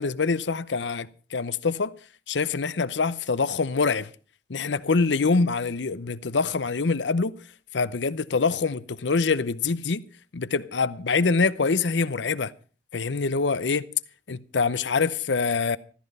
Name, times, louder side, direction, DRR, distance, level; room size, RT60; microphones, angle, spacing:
voice 1, 0.0-1.9 2.3-4.1 4.5-7.3 7.7-10.0 10.3-12.5 12.9-13.9 14.3-15.8, left 4 dB, 80° left, 0.7 m, -25 dB
14.5 x 13.5 x 5.4 m
head